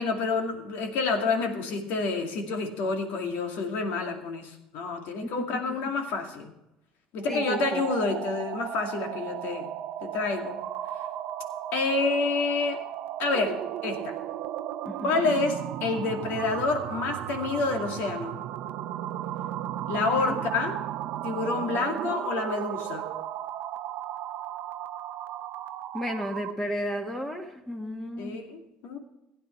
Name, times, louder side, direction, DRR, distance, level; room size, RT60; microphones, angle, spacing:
voice 1, 0.0-6.5 7.1-9.7 10.0-10.6 11.7-12.8 13.2-14.2 15.0-18.4 19.9-20.8 21.2-23.0 28.2-29.0, left 3 dB, 70° left, 3 dB, 2.3 m, -28 dB
sound 1, 7.2-26.6, right 12 dB, 65° right, 0.6 m, -35 dB
voice 2, 7.3-7.8 14.8-15.1 20.2-20.4 25.9-28.5, equal, 10° left, 4 dB, 1.8 m, -33 dB
16.0 x 9.6 x 4.4 m, 0.89 s
hypercardioid pair, 75°, 3 cm